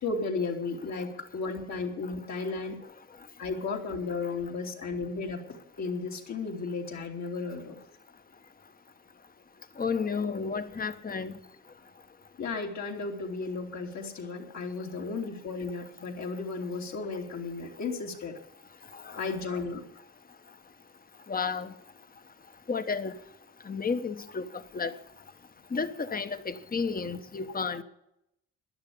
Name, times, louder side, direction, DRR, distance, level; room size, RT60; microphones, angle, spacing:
voice 1, 0.0-2.8 3.4-5.4 5.8-7.8 12.4-18.4 19.1-19.8 27.6-27.8, left 4 dB, 65° left, 3.0 m, -34 dB
voice 2, 9.8-11.4 18.9-19.2 21.3-21.7 22.7-23.1 23.7-24.5 24.7-24.9 25.7-27.8, left 5 dB, 30° left, 1.2 m, -32 dB
12.5 x 10.5 x 8.7 m
cardioid pair, 90°, 30 cm